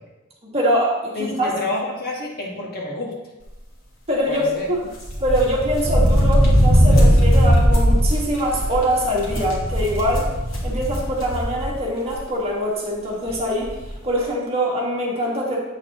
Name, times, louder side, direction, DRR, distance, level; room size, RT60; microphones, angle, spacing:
voice 1, 0.4-1.5 4.1-4.8 5.2-10.3 10.6-13.7 14.0-15.6, equal, 30° right, -3 dB, 1.7 m, -23 dB
voice 2, 1.1-3.2 4.3-4.7, left 2 dB, 50° left, -1 dB, 1.4 m, -28 dB
sound 1, 5.0-11.7 12.1-12.2 13.3-13.4 13.6-13.9, equal, 85° left, 2.1 m, -18 dB
8.4 x 6.6 x 3.0 m, 1.1 s
head